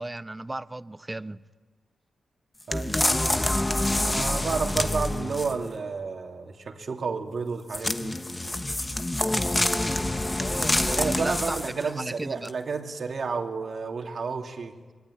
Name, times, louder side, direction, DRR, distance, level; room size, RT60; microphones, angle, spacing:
voice 1, 0.0-1.4 10.4-11.6 11.8-12.5, right 2 dB, 20° right, 0.9 m, -35 dB
sound 1, 2.7-5.7 7.7-11.9 12.4-12.5, left 1 dB, 20° left, 1.2 m, -26 dB
voice 2, 2.7-3.2 4.1-8.2 10.9-14.7, right 5 dB, 60° right, 2.9 m, -31 dB
26.0 x 22.5 x 9.4 m
cardioid pair, 70°, 0 cm